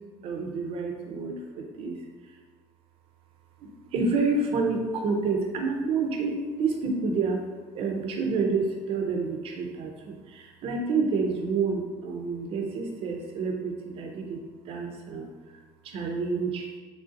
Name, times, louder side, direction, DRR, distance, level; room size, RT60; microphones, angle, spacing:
voice 1, 0.2-2.0 3.9-7.4 7.7-14.4 14.7-15.3 15.8-16.7, right 4 dB, 60° right, 2 dB, 0.6 m, -28 dB
3.5 x 2.4 x 2.6 m, 1.4 s
cardioid pair, 110°, 11 cm